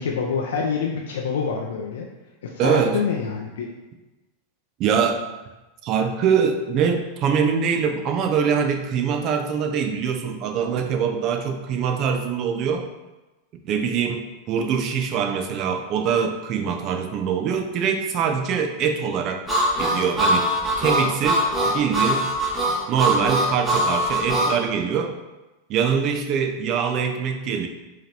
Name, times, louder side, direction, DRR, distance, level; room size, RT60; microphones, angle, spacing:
voice 1, 0.0-2.1 2.4-3.7, left 5 dB, 80° left, -1 dB, 0.5 m, -26 dB
voice 2, 2.6-3.0 4.8-5.2 5.8-12.8 13.6-19.4 19.8-22.3 22.9-25.1 25.7-27.7, right 7 dB, 45° right, 5 dB, 0.6 m, -23 dB
Harmonica, 19.5-24.5, right 1 dB, 15° right, 1.3 m, -22 dB
4.7 x 2.9 x 3.3 m, 1.1 s
hypercardioid pair, 110°, 0 cm